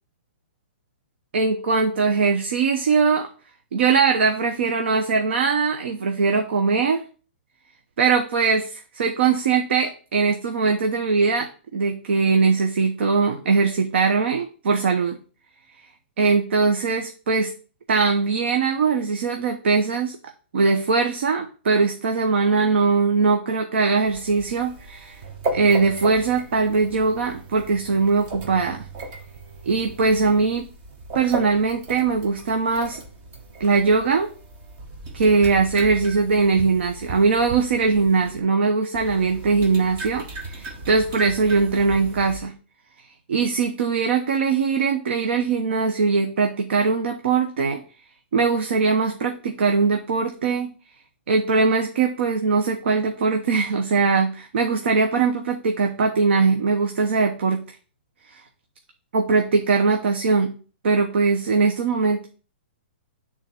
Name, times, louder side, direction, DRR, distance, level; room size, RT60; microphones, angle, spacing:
voice 1, 1.3-3.3 3.7-7.0 8.0-15.2 16.2-17.5 17.9-20.2 20.5-25.2 25.5-28.8 29.6-30.7 31.1-33.0 33.6-34.3 35.1-42.5 43.3-47.8 48.3-50.7 51.3-57.6 58.3-58.4 59.1-60.5 60.8-62.3, right 4 dB, 65° right, 4 dB, 0.9 m, -21 dB
sound 1, 24.0-38.4 38.9-42.4, right 2 dB, 25° right, 1.2 m, -36 dB
8.2 x 3.7 x 4.3 m, 0.38 s
hypercardioid pair, 165°, 6 cm